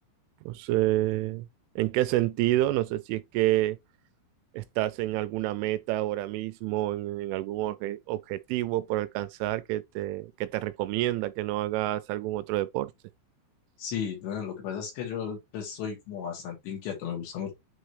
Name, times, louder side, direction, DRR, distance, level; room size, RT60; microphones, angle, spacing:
voice 1, 0.5-1.5 1.8-3.8 4.5-12.9, right 16 dB, 85° right, 3.0 m, -28 dB
voice 2, 13.8-17.5, left 8 dB, 65° left, 4.8 m, -34 dB
9.0 x 3.9 x 3.1 m
omnidirectional pair, 5.6 m